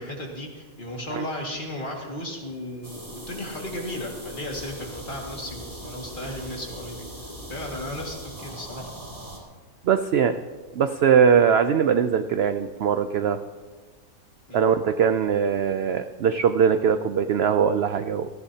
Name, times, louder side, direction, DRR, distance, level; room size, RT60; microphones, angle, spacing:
voice 1, 0.0-8.9 14.5-14.6, left 1 dB, 35° left, -1 dB, 2.2 m, -35 dB
sound 1, 2.8-9.4, right 1 dB, 20° right, 2.3 m, -40 dB
voice 2, 9.8-10.4 10.7-13.4 14.5-18.3, right 7 dB, 70° right, 9 dB, 0.6 m, -21 dB
18.0 x 15.0 x 2.8 m, 1.5 s
omnidirectional pair, 1.6 m